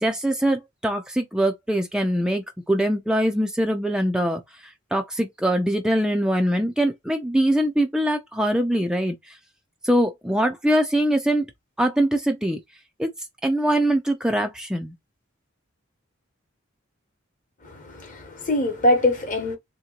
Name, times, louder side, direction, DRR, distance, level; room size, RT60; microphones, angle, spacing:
voice 1, 0.0-9.4 9.8-11.5 11.8-12.6 13.0-13.1 13.4-14.9, right 1 dB, 5° right, 0.4 m, -23 dB
voice 2, 17.6-19.6, left 1 dB, 40° left, 1.0 m, -23 dB
3.6 x 2.9 x 2.3 m
head